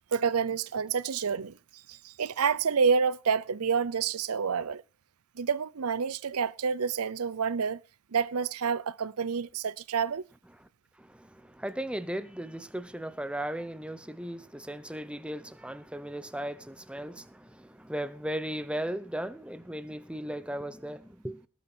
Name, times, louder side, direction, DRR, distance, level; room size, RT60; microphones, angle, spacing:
voice 1, 0.1-1.6 1.9-4.8 5.4-7.8 8.1-10.2, right 6 dB, 75° right, 0.6 m, -28 dB
voice 2, 11.0-21.5, right 1 dB, 5° right, 0.8 m, -37 dB
19.0 x 8.4 x 4.4 m
head